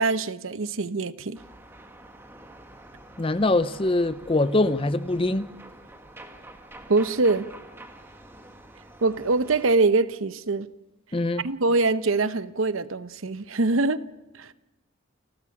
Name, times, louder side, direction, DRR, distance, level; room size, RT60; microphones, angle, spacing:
voice 1, 0.0-1.4 6.9-7.5 9.0-10.7 11.4-14.0 14.4-14.5, right 3 dB, 80° right, 0.9 m, -23 dB
sound 1, 1.3-9.7, right 1 dB, 10° right, 1.8 m, -47 dB
voice 2, 3.2-5.5 11.1-11.4, left 2 dB, 25° left, 0.7 m, -23 dB
29.5 x 13.5 x 7.2 m
head